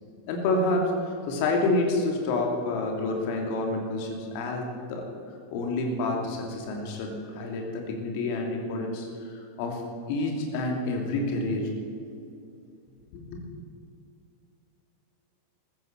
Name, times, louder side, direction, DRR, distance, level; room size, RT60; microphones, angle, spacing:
voice 1, 0.3-5.0 5.5-11.7 13.1-13.4, left 2 dB, 45° left, 1 dB, 2.8 m, -28 dB
15.0 x 14.0 x 4.8 m, 2.5 s
figure-of-eight pair, 90°, 0 cm